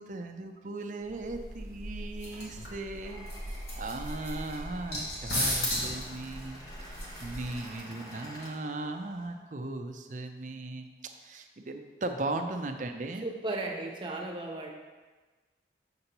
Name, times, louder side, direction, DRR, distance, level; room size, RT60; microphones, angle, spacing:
voice 1, 0.0-6.6 7.0-13.2, right 2 dB, 45° right, 5 dB, 0.5 m, -38 dB
sound 1, 1.1-7.8, equal, 70° left, 2.1 m, -37 dB
Glass, 3.0-9.3, left 1 dB, 20° left, 0.9 m, -44 dB
voice 2, 13.2-14.7, right 2 dB, 25° right, 0 dB, 0.8 m, -35 dB
6.7 x 6.7 x 2.9 m, 1.3 s
head